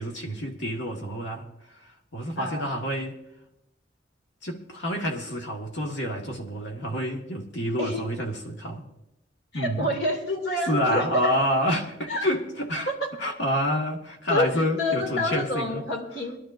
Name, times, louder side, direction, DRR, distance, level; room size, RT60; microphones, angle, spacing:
voice 1, 0.0-1.5 2.1-3.2 4.4-8.9 9.5-9.9 10.7-12.9 13.2-15.8, equal, 85° left, 1.8 m, -28 dB
voice 2, 2.4-2.7 7.8-8.0 9.5-11.4 12.1-12.3 12.9-13.1 14.3-16.4, left 1 dB, 65° left, 2.5 m, -28 dB
22.5 x 12.0 x 2.6 m
head